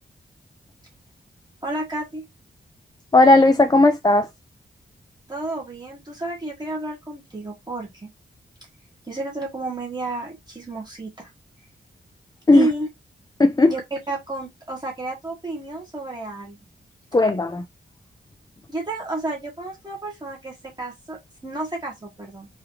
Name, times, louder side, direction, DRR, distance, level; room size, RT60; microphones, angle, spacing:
voice 1, 1.6-2.2 5.3-8.1 9.1-11.3 12.5-12.9 13.6-16.6 18.7-22.5, right 2 dB, 20° right, 1.4 m, -31 dB
voice 2, 3.1-4.3 12.5-12.7 13.4-13.7 17.1-17.6, left 2 dB, 20° left, 0.5 m, -15 dB
4.8 x 2.7 x 3.1 m
wide cardioid pair, 100°, 19 cm